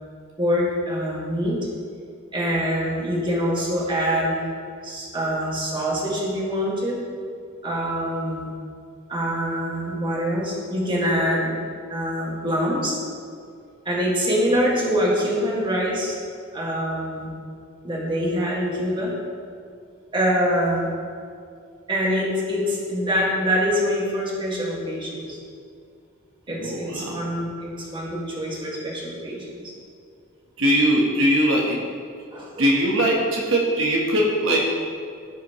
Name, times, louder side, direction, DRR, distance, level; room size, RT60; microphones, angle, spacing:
voice 1, 0.4-1.6 2.3-4.4 4.8-7.0 7.6-8.5 9.1-11.6 11.9-13.0 13.9-16.2 16.5-17.3 17.8-19.1 20.1-20.9 21.9-25.4 26.5-29.7 32.3-32.7, equal, 25° right, -4 dB, 1.8 m, -24 dB
voice 2, 26.5-27.2 30.6-31.8 32.6-34.6, equal, 70° right, -2 dB, 1.3 m, -21 dB
15.0 x 5.9 x 3.1 m, 2.3 s
head